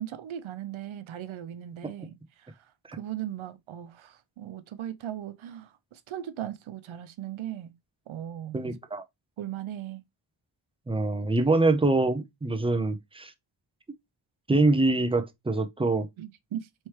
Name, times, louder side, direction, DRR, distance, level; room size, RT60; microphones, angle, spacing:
voice 1, 0.0-2.7 2.9-7.7 8.1-8.6 9.4-10.0 16.2-16.7, right 11 dB, 90° right, 0.6 m, -38 dB
voice 2, 8.5-9.0 10.9-13.3 14.5-16.1, right 2 dB, 15° right, 0.4 m, -24 dB
4.4 x 3.3 x 3.1 m
wide cardioid pair, 165°, 46 cm